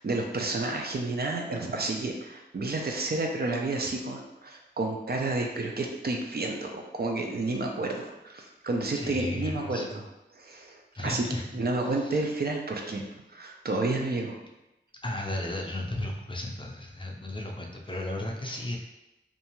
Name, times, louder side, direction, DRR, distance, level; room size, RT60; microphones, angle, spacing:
voice 1, 0.0-9.9 10.4-11.2 11.5-14.3, right 2 dB, 55° right, 1 dB, 0.4 m, -30 dB
voice 2, 8.9-10.0 11.0-11.5 11.8-12.2 15.0-18.8, left 1 dB, 25° left, 0 dB, 0.4 m, -34 dB
2.6 x 2.3 x 2.9 m, 0.95 s
wide cardioid pair, 60°, 19 cm